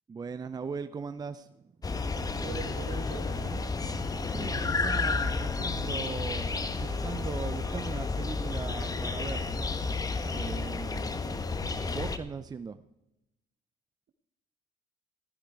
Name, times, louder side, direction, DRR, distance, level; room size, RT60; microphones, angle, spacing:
voice 1, 0.1-1.7 4.3-9.5 10.3-11.6 11.9-12.8, right 5 dB, 25° right, 11 dB, 0.6 m, -39 dB
sound 1, 1.8-12.2, left 3 dB, 20° left, 1.2 m, -31 dB
voice 2, 2.4-3.7, right 6 dB, 60° right, 9 dB, 1.8 m, -42 dB
15.0 x 14.0 x 4.7 m, 0.92 s
cardioid pair, 110°, 17 cm